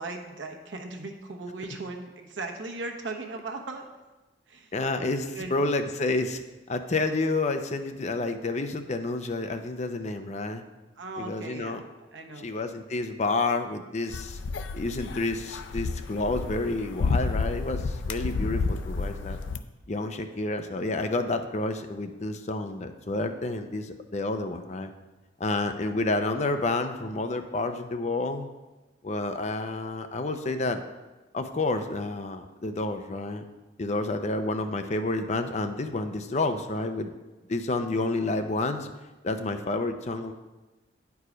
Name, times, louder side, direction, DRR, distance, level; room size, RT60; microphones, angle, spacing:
voice 1, 0.0-3.8 4.5-4.7 5.3-5.5 11.0-11.8 12.1-12.5, right 3 dB, 85° right, 3 dB, 1.0 m, -37 dB
voice 2, 4.7-6.4 6.7-10.6 11.2-11.8 12.4-14.4 14.7-19.4 19.9-24.9 25.4-28.5 29.0-30.8 31.3-33.4 33.8-37.2 37.5-38.9 39.2-40.3, left 2 dB, 40° left, 7 dB, 0.5 m, -29 dB
sound 1, 14.1-19.6, left 4 dB, 90° left, 0.4 m, -30 dB
9.6 x 4.7 x 5.0 m, 1.1 s
head